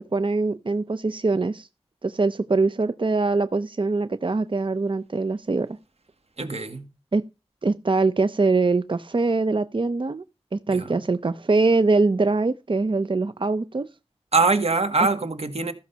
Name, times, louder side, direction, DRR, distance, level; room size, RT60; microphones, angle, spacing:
voice 1, 0.0-1.7 2.0-5.8 7.1-7.2 7.6-10.2 10.5-13.9, right 3 dB, 55° right, 0.6 m, -23 dB
voice 2, 6.4-6.9 10.7-11.0 14.3-15.7, right 4 dB, 85° right, 1.8 m, -23 dB
14.0 x 6.1 x 5.5 m
wide cardioid pair, 50°, 10 cm